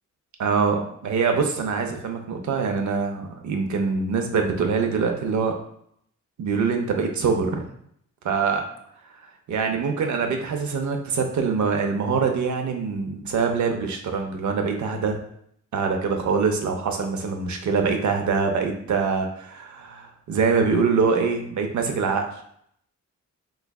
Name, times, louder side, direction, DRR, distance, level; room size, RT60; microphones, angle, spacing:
voice 1, 0.4-5.5 6.4-7.6 8.2-8.6 9.5-15.2 15.7-22.3, right 5 dB, 70° right, 4 dB, 0.6 m, -24 dB
3.5 x 3.1 x 2.2 m, 0.69 s
wide cardioid pair, 120°, 31 cm